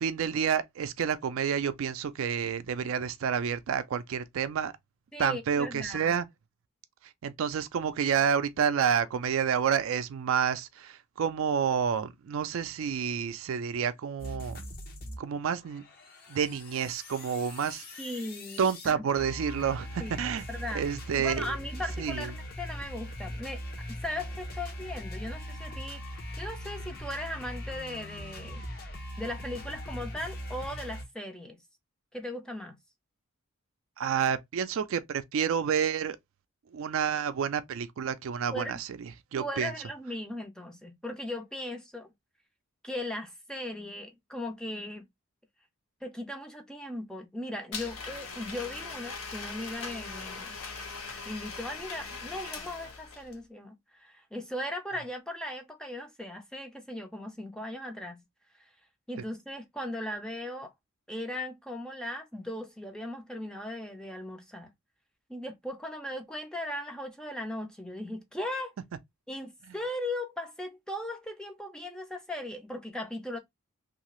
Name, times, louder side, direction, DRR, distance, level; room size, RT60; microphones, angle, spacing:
voice 1, 0.0-4.7 5.2-6.3 7.2-14.6 15.2-15.8 16.3-17.8 18.6-20.4 20.7-21.5 22.0-22.3 34.0-36.2 36.7-39.7, right 7 dB, 70° right, 0.4 m, -29 dB
voice 2, 5.1-6.1 18.0-19.0 20.0-20.2 20.5-20.8 21.1-23.6 23.9-26.0 26.4-28.6 29.2-31.6 32.1-32.8 38.5-38.8 39.4-42.1 42.8-45.1 46.0-50.5 51.3-58.2 59.1-60.7 61.1-64.7 65.3-68.7 69.3-73.4, left 1 dB, 5° left, 0.4 m, -38 dB
sound 1, 14.2-15.2 15.5-31.0, equal, 45° left, 0.7 m, -40 dB
Domestic sounds home sounds, 47.7-53.4, left 4 dB, 80° left, 0.8 m, -40 dB
2.8 x 2.4 x 2.9 m
head